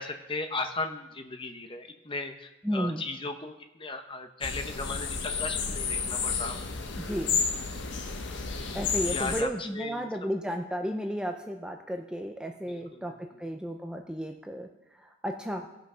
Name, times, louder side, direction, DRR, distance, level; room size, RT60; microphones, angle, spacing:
voice 1, 0.0-6.6 9.0-10.1 12.7-13.1, left 3 dB, 25° left, 6 dB, 0.9 m, -36 dB
voice 2, 2.6-3.0 7.0-7.4 8.7-15.7, equal, 5° right, 4 dB, 0.5 m, -33 dB
sound 1, 4.4-9.4, left 5 dB, 65° left, 1.0 m, -31 dB
17.5 x 6.1 x 5.6 m, 0.98 s
head